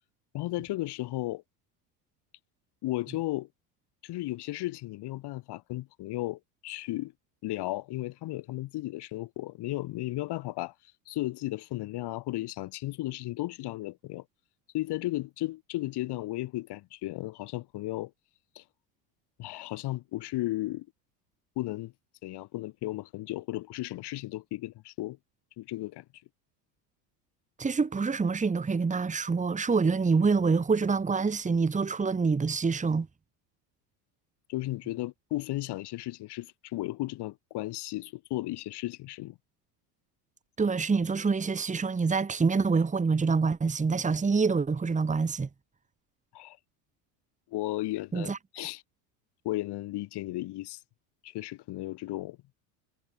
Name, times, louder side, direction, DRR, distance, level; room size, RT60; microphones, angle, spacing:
voice 1, 0.3-1.4 2.8-3.5 4.0-7.1 7.4-10.7 11.1-14.2 14.7-18.1 18.5-18.6 19.4-20.9 21.6-21.9 22.2-25.2 25.6-26.0 34.5-39.4 46.3-46.6 47.5-48.8 49.4-50.8 51.2-52.4, left 17 dB, 50° left, 6.3 m, -34 dB
voice 2, 27.6-33.1 40.6-45.5 48.1-48.4, right 4 dB, 15° right, 2.5 m, -26 dB
supercardioid pair, 115°, 50 cm